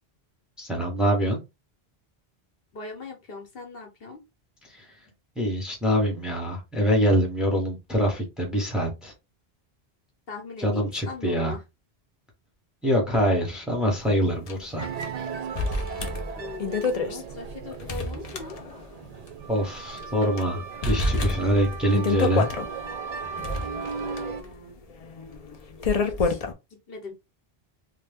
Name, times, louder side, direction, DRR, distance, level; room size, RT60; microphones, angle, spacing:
voice 1, 0.6-1.4 4.7-4.8 5.4-9.1 10.6-11.5 12.8-14.9 19.5-22.5, equal, ahead, 0 dB, 0.9 m, -24 dB
voice 2, 2.7-4.2 10.3-11.6 16.3-18.6 24.0-24.9 26.0-26.4 26.7-27.1, left 3 dB, 70° left, 1 dB, 1.1 m, -40 dB
sound 1, 14.5-14.6 14.8-14.9 15.6-19.0 19.3-19.4 20.0-20.4 20.8-22.7 23.2-26.5, left 3 dB, 45° left, 0.6 m, -28 dB
sound 2, 14.8-24.4, right 5 dB, 55° right, 0.5 m, -36 dB
2.8 x 2.2 x 3.4 m, 0.24 s
omnidirectional pair, 1.0 m